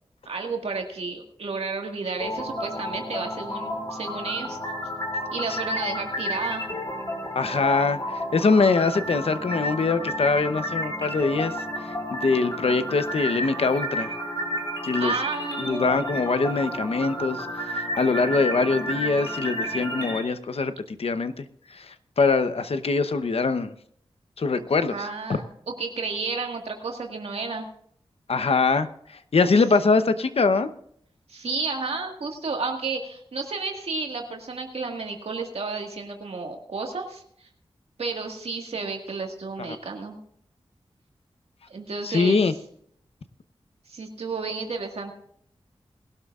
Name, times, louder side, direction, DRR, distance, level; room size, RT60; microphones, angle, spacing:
voice 1, 0.3-4.6 5.3-6.6 15.0-15.9 24.6-27.7 31.3-37.2 38.0-40.2 41.7-42.5 43.9-45.1, right 4 dB, 80° right, 2 dB, 1.9 m, -32 dB
sound 1, 2.2-20.2, equal, 40° left, 4.8 m, -31 dB
voice 2, 7.3-11.5 12.1-14.1 14.8-15.1 15.6-21.5 21.7-23.7 24.4-25.0 28.3-28.9 29.3-30.7 39.7-39.8 42.0-42.5, left 4 dB, 75° left, 10 dB, 0.9 m, -23 dB
20.5 x 12.5 x 2.5 m, 0.66 s
wide cardioid pair, 65°, 10 cm